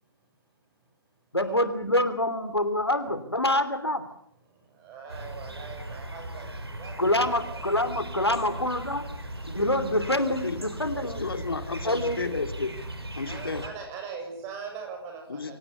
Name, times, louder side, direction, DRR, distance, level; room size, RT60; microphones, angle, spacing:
voice 1, 0.0-1.6 4.4-7.6 8.5-8.7 8.9-9.2 13.2-15.6, right 6 dB, 20° right, 3 dB, 7.0 m, -43 dB
voice 2, 1.3-4.0 7.0-9.0 9.5-11.2 11.8-12.3, left 1 dB, 85° left, 11 dB, 3.0 m, -26 dB
sound 1, 5.1-13.7, right 1 dB, 75° right, 5.3 m, -38 dB
voice 3, 11.2-12.7 13.1-13.6 15.3-15.6, left 4 dB, 65° left, 8 dB, 2.5 m, -32 dB
25.5 x 18.5 x 8.3 m, 0.70 s
figure-of-eight pair, 135°, 13 cm